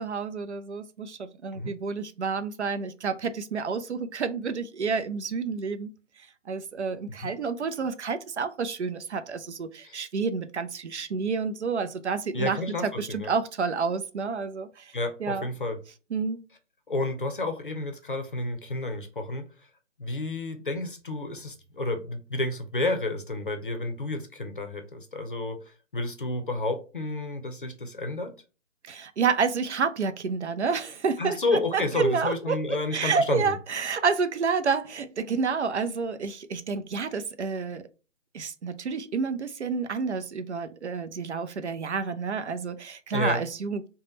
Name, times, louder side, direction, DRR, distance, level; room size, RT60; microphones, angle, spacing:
voice 1, 0.0-5.9 6.5-14.9 15.2-15.5 16.1-16.4 28.9-31.4 31.7-37.8 38.3-43.9, right 5 dB, 65° right, 0.5 m, -29 dB
voice 2, 12.3-13.3 14.9-15.8 16.9-19.5 20.0-25.6 25.9-28.3 31.2-33.5 43.1-43.4, left 2 dB, 45° left, 0.6 m, -30 dB
3.5 x 2.1 x 4.0 m
hypercardioid pair, 175°, 37 cm